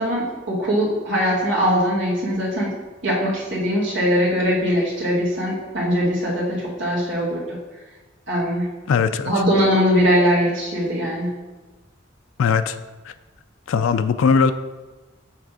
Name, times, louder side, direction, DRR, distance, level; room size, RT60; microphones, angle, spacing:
voice 1, 0.0-2.7 3.0-7.6 8.3-8.7 9.2-11.4, equal, 65° right, -4 dB, 2.2 m, -21 dB
voice 2, 8.9-9.3 12.4-12.8 13.7-14.5, left 6 dB, 80° left, 10 dB, 0.4 m, -19 dB
7.5 x 3.4 x 6.1 m, 1.2 s
head